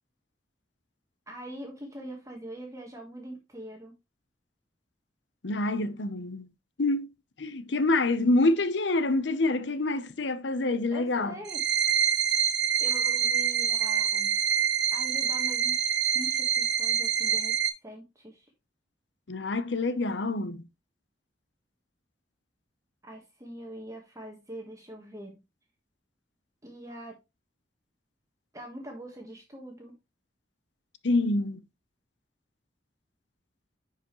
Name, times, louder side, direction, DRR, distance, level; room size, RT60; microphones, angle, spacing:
voice 1, 1.3-3.9 10.9-11.6 12.8-14.4 14.9-18.5 23.0-25.4 26.6-27.2 28.5-29.9, right 1 dB, 20° right, 1.4 m, -43 dB
voice 2, 5.4-6.5 6.8-7.1 7.4-11.3 19.3-20.6 31.0-31.6, left 2 dB, 85° left, 0.8 m, -26 dB
sound 1, 11.5-17.7, right 8 dB, 70° right, 0.8 m, -26 dB
10.0 x 4.9 x 3.1 m
head